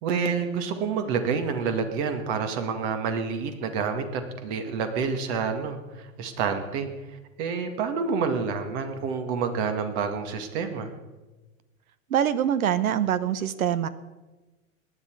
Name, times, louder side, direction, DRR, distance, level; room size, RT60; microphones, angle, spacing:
voice 1, 0.0-10.9, right 5 dB, 55° right, 6 dB, 2.2 m, -28 dB
voice 2, 12.1-13.9, right 9 dB, 80° right, 14 dB, 1.1 m, -24 dB
18.5 x 10.5 x 4.8 m, 1.2 s
hypercardioid pair, 100°, 42 cm